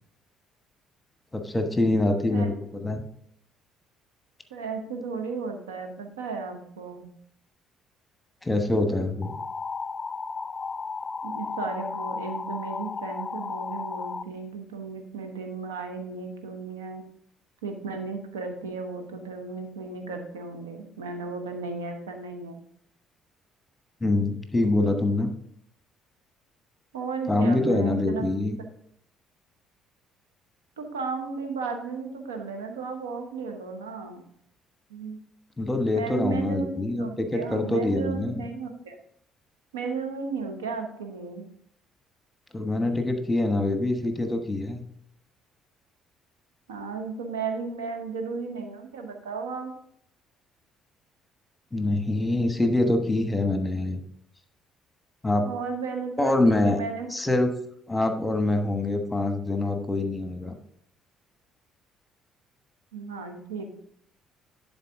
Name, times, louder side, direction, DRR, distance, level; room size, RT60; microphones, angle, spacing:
voice 1, 1.3-3.0 8.4-9.4 24.0-25.3 27.3-28.6 35.6-38.4 42.5-44.8 51.7-54.0 55.2-55.5 56.2-56.8 57.1-57.5 57.9-60.6, left 2 dB, 15° left, 7 dB, 1.1 m, -25 dB
voice 2, 4.5-7.1 11.2-17.0 17.6-22.7 26.9-28.3 30.8-34.2 34.9-35.2 35.9-39.0 39.7-41.5 46.7-49.7 55.4-57.1 62.9-63.7, right 4 dB, 85° right, 5 dB, 1.0 m, -34 dB
sound 1, 9.2-14.2, left 4 dB, 35° left, 0.3 m, -34 dB
11.0 x 4.0 x 3.6 m, 0.69 s
hypercardioid pair, 50°, 0 cm